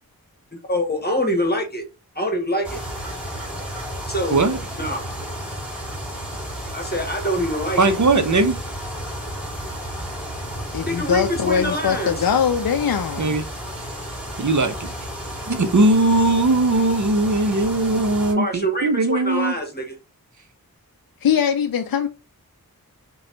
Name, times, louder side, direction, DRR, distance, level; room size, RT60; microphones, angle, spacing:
voice 1, 0.7-1.8 2.2-2.8 4.1-4.4 4.8-5.0 6.7-8.0 10.8-12.1 18.3-19.9, equal, 25° left, 1.2 m, -25 dB
sound 1, 2.6-18.3, equal, 5° right, 2.5 m, -32 dB
voice 2, 7.8-8.6 13.2-13.4 14.4-14.9 15.5-19.6, right 2 dB, 50° right, 0.7 m, -19 dB
voice 3, 10.7-13.4 21.2-22.1, left 7 dB, 70° left, 0.5 m, -21 dB
3.9 x 2.3 x 4.3 m
wide cardioid pair, 50°, 37 cm